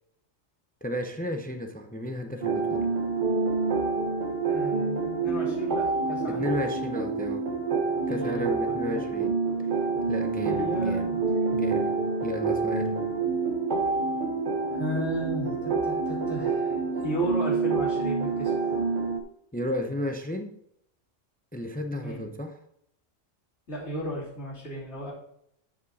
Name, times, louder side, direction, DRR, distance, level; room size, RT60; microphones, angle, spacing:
voice 1, 0.8-2.9 6.3-7.5 8.1-9.4 10.1-11.1 11.5-13.0 19.5-20.6 21.5-22.6, left 1 dB, 10° left, 6 dB, 0.6 m, -33 dB
sound 1, 2.4-19.2, right 4 dB, 45° right, 1.0 m, -27 dB
voice 2, 4.5-6.5 8.1-8.5 8.8-9.0 10.4-11.2 14.7-18.8 22.0-22.2 23.7-25.1, equal, 65° left, -6 dB, 3.6 m, -34 dB
12.5 x 5.2 x 4.1 m, 0.73 s
omnidirectional pair, 1.3 m